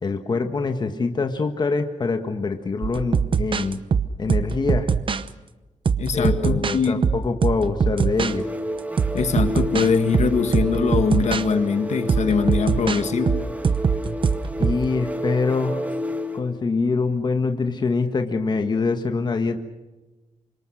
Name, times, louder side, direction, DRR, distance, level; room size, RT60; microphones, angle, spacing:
voice 1, 0.0-3.8 4.2-4.9 6.1-8.5 14.6-15.9 16.3-19.6, left 4 dB, 35° left, 6 dB, 1.5 m, -24 dB
sound 1, 2.8-5.3 5.9-8.3 8.8-11.4 12.1-14.8, right 6 dB, 45° right, 0.9 m, -23 dB
voice 2, 6.0-7.0 9.1-13.4, left 5 dB, 70° left, 8 dB, 1.9 m, -22 dB
sound 2, 8.1-16.5, left 1 dB, 10° right, 1.6 m, -30 dB
28.0 x 25.5 x 6.5 m, 1.1 s
wide cardioid pair, 165°, 12 cm